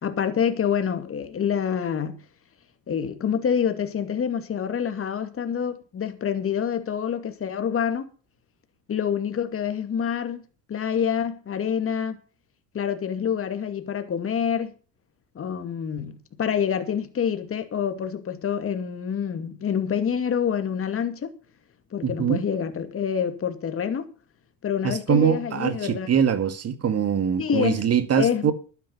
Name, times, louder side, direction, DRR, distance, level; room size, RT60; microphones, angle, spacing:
voice 1, 0.0-2.2 2.9-8.1 8.9-10.4 10.7-12.2 12.7-14.7 15.3-21.3 21.9-24.1 24.6-26.1 27.4-27.8 28.2-28.5, left 8 dB, 35° left, 2.4 m, -27 dB
voice 2, 22.0-22.4 24.8-28.5, right 8 dB, 40° right, 2.0 m, -23 dB
12.0 x 10.0 x 5.5 m
cardioid pair, 115°, 38 cm